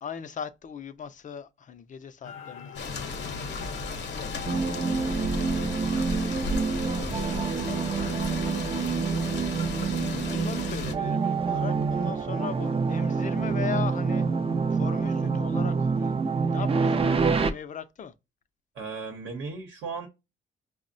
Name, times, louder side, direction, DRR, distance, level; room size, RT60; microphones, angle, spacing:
voice 1, 0.0-8.9 10.0-14.3 14.7-16.1 16.5-18.1, left 7 dB, 40° left, 0.5 m, -40 dB
sound 1, 2.2-6.8, left 7 dB, 90° left, 0.5 m, -44 dB
sound 2, 2.7-10.9, left 3 dB, 60° left, 0.8 m, -34 dB
sound 3, 4.5-17.5, right 5 dB, 30° right, 0.4 m, -27 dB
voice 2, 18.7-20.1, right 4 dB, 70° right, 0.9 m, -36 dB
5.1 x 2.1 x 2.5 m
cardioid pair, 90°, 20 cm